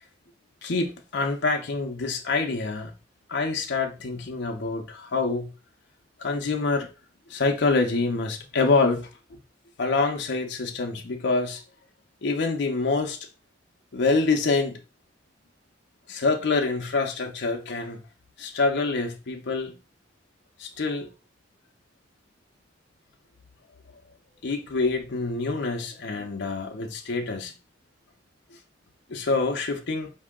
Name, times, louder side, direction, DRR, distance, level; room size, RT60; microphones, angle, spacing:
voice 1, 0.6-2.9 3.3-5.5 6.2-6.9 7.3-9.1 9.8-11.6 12.2-13.2 13.9-14.8 16.1-18.0 18.4-19.7 20.6-21.1 24.4-27.5 29.1-30.1, left 3 dB, 60° left, 0.6 m, -26 dB
4.4 x 2.8 x 3.6 m
head